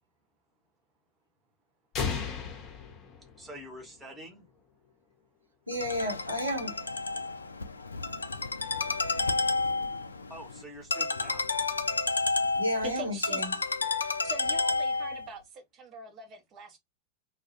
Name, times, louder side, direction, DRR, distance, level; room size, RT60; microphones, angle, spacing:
sound 1, 1.9-3.9, left 6 dB, 30° left, 0.7 m, -35 dB
voice 1, 3.4-4.4 10.3-11.5, equal, 5° right, 0.9 m, -46 dB
Ringtone, 5.7-15.3, left 3 dB, 75° left, 0.3 m, -31 dB
voice 2, 5.7-6.7 12.6-13.5, left 1 dB, 85° right, 0.7 m, -31 dB
voice 3, 12.8-13.4 14.0-16.8, right 2 dB, 30° right, 0.7 m, -43 dB
2.2 x 2.1 x 2.8 m
figure-of-eight pair, 90°, 0 cm